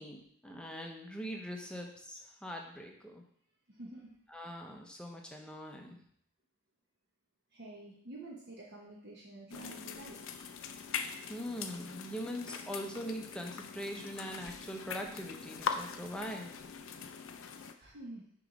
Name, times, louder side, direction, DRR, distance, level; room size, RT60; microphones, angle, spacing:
voice 1, 0.0-3.2 4.3-6.0 11.3-16.5, equal, 5° left, 1 dB, 0.7 m, -42 dB
voice 2, 3.7-4.1 7.5-10.5 17.1-17.5 17.8-18.2, right 1 dB, 50° right, -3 dB, 0.9 m, -49 dB
sound 1, 9.5-17.7, left 6 dB, 60° left, 0.4 m, -42 dB
6.5 x 3.1 x 5.1 m, 0.66 s
head